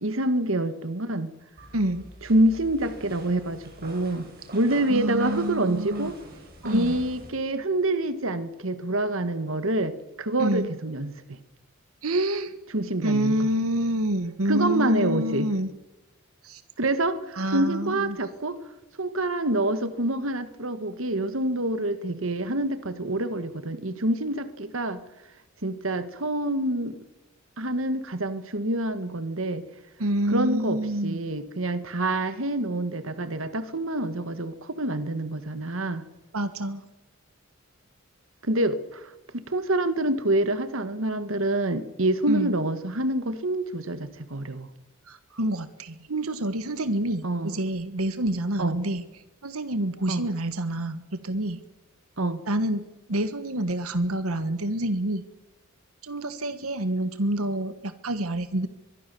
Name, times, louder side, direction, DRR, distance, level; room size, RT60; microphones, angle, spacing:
voice 1, 0.0-1.3 2.3-6.1 6.6-11.1 12.7-13.4 14.5-15.5 16.8-18.6 19.0-25.0 25.6-26.9 27.6-29.6 30.3-36.0 38.4-39.1 39.5-44.7 47.2-47.6 48.6-48.8 50.1-50.2 52.2-52.4, right 1 dB, 65° right, 11 dB, 1.6 m, -26 dB
sound 1, 1.6-7.3, right 1 dB, 45° right, 7.0 m, -44 dB
voice 2, 1.7-2.0 4.9-6.1 6.6-7.0 10.4-10.7 12.0-12.5 13.0-15.7 16.4-16.6 17.3-18.2 30.0-31.2 36.3-36.8 42.3-42.6 45.1-49.0 49.4-51.6 52.5-52.8 53.1-55.2 56.0-58.7, right 1 dB, 85° right, 11 dB, 1.5 m, -27 dB
23.5 x 22.5 x 7.0 m, 1.0 s
head